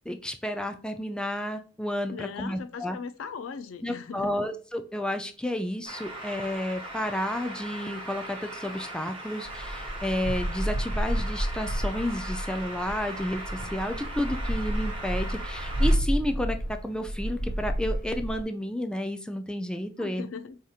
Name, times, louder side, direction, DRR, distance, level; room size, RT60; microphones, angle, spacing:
voice 1, 0.1-3.0 3.8-20.3, left 1 dB, 5° left, 0.3 m, -31 dB
voice 2, 2.1-4.3 20.0-20.6, left 5 dB, 85° left, 0.4 m, -39 dB
sound 1, 5.8-15.9, right 1 dB, 30° right, 1.0 m, -39 dB
sound 2, 9.4-18.4, right 1 dB, 45° left, 1.3 m, -30 dB
4.9 x 2.8 x 2.4 m
head